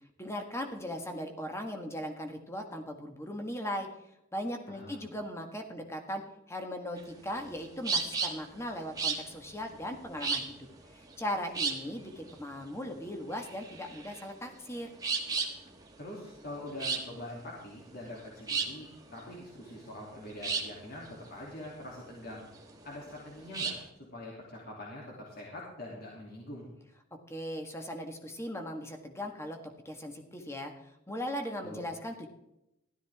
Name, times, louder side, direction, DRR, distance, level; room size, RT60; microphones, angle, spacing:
voice 1, 0.2-3.9 4.3-6.2 6.5-10.5 10.9-14.9 27.3-29.6 29.8-30.7 31.1-32.3, equal, 15° left, 4 dB, 1.7 m, -38 dB
voice 2, 4.7-5.0 16.0-22.5 22.8-23.7 24.1-26.7 31.6-31.8, left 1 dB, 50° left, -4 dB, 2.9 m, -44 dB
sound 1, 7.0-23.9, right 4 dB, 20° right, 1.6 m, -36 dB
15.5 x 12.5 x 3.6 m, 0.84 s
head